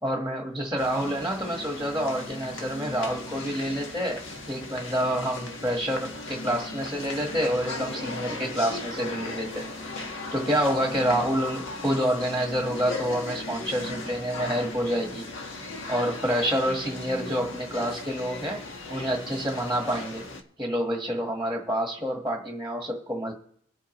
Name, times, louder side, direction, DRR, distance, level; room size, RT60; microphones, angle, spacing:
voice 1, 0.0-4.2 4.5-9.6 10.3-15.3 15.9-18.6 18.9-20.2 20.6-23.3, equal, 5° right, 0 dB, 1.5 m, -28 dB
sound 1, 0.8-20.4, left 2 dB, 70° left, 1.6 m, -37 dB
24.0 x 8.3 x 3.1 m, 0.64 s
head